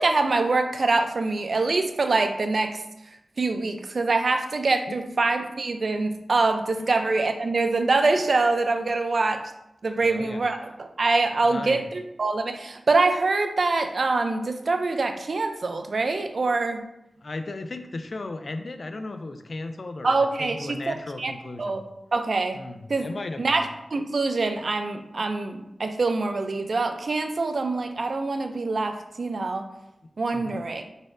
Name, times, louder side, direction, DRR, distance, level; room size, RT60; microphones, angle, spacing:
voice 1, 0.0-2.8 3.4-9.4 9.8-16.8 20.0-21.3 21.6-21.8 22.1-22.6 22.9-23.1 23.4-29.7 30.2-30.8, right 3 dB, 60° right, 6 dB, 0.5 m, -24 dB
voice 2, 10.0-10.4 11.4-11.8 17.2-21.8 22.5-23.7 30.3-30.6, left 2 dB, 55° left, 8 dB, 0.4 m, -36 dB
4.5 x 4.0 x 2.6 m, 0.84 s
wide cardioid pair, 70°, 0 cm